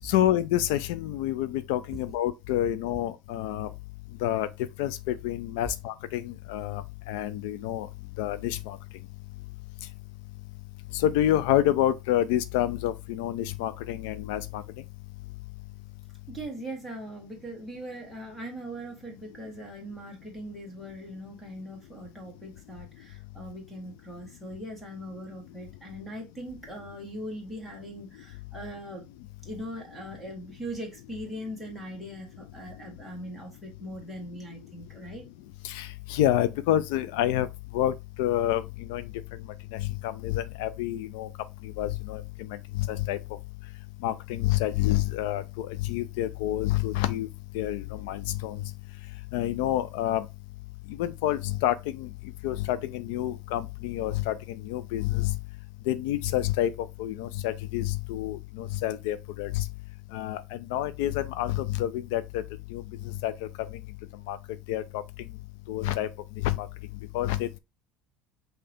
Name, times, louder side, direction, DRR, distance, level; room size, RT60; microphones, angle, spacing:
voice 1, 0.0-3.7 4.2-4.5 4.8-6.8 7.1-7.9 8.2-8.8 11.0-14.6 35.6-37.5 37.7-38.6 38.9-39.0 39.7-41.3 41.8-42.2 42.8-43.2 44.0-47.3 47.5-48.6 49.3-50.3 51.0-52.1 52.4-54.3 54.7-55.3 55.9-56.7 57.0-59.6 60.1-60.4 60.7-62.4 62.7-62.8 63.2-63.3 64.3-64.4 64.7-65.0 65.7-66.1 66.4-66.7 67.1-67.5, left 13 dB, 80° left, 0.4 m, -28 dB
voice 2, 16.3-29.1 29.4-35.3, right 1 dB, ahead, 1.5 m, -40 dB
5.6 x 2.7 x 3.4 m
cardioid pair, 170°, 0 cm